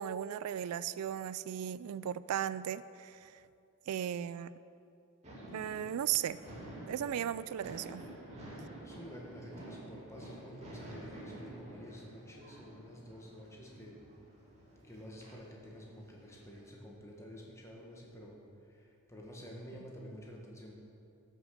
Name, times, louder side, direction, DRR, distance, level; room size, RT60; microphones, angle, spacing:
voice 1, 0.0-3.4 3.9-4.5 5.5-6.4 6.9-8.0, right 10 dB, 85° right, 17 dB, 0.3 m, -36 dB
sound 1, 5.2-16.6, right 1 dB, 30° right, 2.4 m, -50 dB
voice 2, 8.8-14.0 14.8-20.7, equal, 15° left, -2 dB, 1.5 m, -50 dB
12.5 x 6.5 x 6.4 m, 2.6 s
head